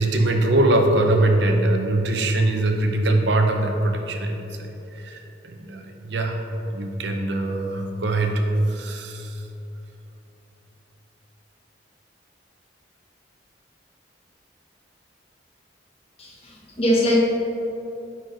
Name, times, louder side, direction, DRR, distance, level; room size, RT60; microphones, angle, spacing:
voice 1, 0.0-6.4 6.7-8.4 8.7-9.4, right 2 dB, 70° right, 4 dB, 0.7 m, -22 dB
voice 2, 16.2-17.2, equal, 30° left, -2 dB, 1.1 m, -22 dB
9.4 x 4.5 x 3.9 m, 2.9 s
head